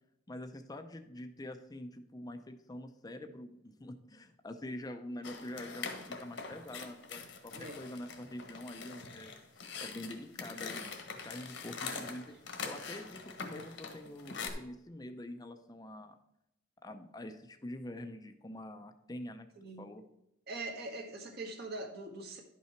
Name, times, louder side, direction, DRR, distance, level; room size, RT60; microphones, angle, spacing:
voice 1, 0.3-9.3 9.8-10.9 11.2-12.3 12.6-16.2 16.8-19.5 19.8-20.0, left 1 dB, 20° left, 6 dB, 0.6 m, -45 dB
sound 1, 5.2-14.5, left 5 dB, 75° left, 1.4 m, -43 dB
voice 2, 19.5-19.8 20.5-22.4, right 2 dB, 55° right, 2 dB, 1.6 m, -42 dB
11.0 x 5.7 x 4.5 m, 0.83 s
head